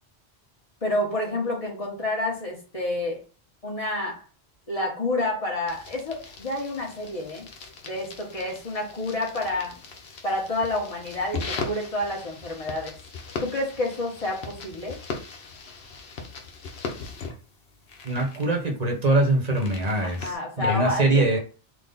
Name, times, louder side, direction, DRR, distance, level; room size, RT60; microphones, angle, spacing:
voice 1, 0.8-3.2 3.6-4.2 4.7-7.5 7.8-9.7 10.2-12.9 13.4-15.0 20.0-21.2, left 2 dB, 35° left, 1.3 m, -29 dB
sound 1, 5.7-20.4, left 4 dB, 70° left, 1.0 m, -39 dB
voice 2, 18.0-21.4, right 2 dB, 40° right, 1.0 m, -23 dB
3.8 x 2.3 x 3.9 m
omnidirectional pair, 1.1 m